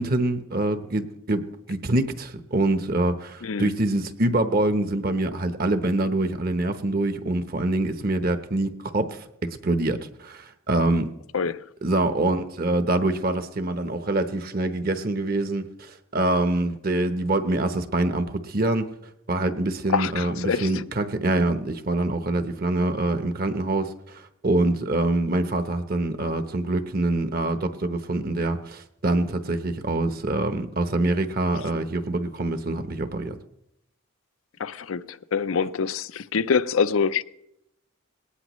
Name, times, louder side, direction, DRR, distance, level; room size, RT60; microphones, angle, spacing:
voice 1, 0.0-11.1 11.8-18.9 19.3-33.3, right 2 dB, 45° right, 0.9 m, -25 dB
voice 2, 3.4-3.7 11.3-11.6 19.9-20.8 34.6-37.2, left 6 dB, 85° left, 0.6 m, -25 dB
20.0 x 18.5 x 3.1 m
head